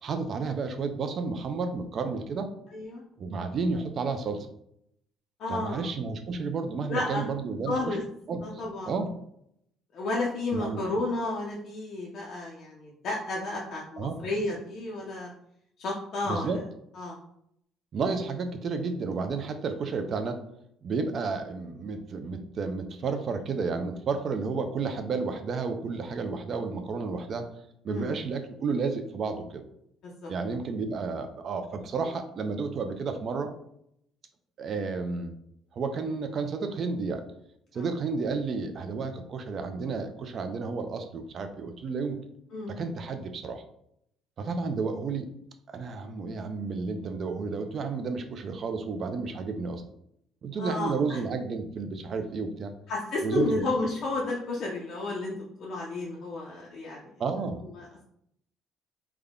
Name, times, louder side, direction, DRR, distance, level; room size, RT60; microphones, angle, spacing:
voice 1, 0.0-2.5 3.2-4.5 5.5-8.0 8.3-8.4 8.9-9.1 10.5-10.8 14.0-14.2 16.3-16.6 17.9-20.4 20.8-27.5 27.8-29.7 30.3-33.5 34.6-35.3 35.7-37.2 37.7-42.2 42.7-43.6 44.4-45.3 45.7-49.8 50.4-52.7 53.2-53.7 57.2-57.6, right 4 dB, 35° right, 8 dB, 0.4 m, -31 dB
voice 2, 2.7-3.0 5.4-5.9 6.9-7.2 7.7-8.0 8.4-8.9 9.9-15.3 15.8-16.5 17.0-17.2 27.9-28.1 30.0-30.3 37.7-37.9 42.5-42.8 50.6-51.2 52.9-57.0 57.8-58.0, left 2 dB, 45° left, -3 dB, 0.5 m, -32 dB
3.4 x 2.1 x 3.6 m, 0.73 s
cardioid pair, 170°, 0 cm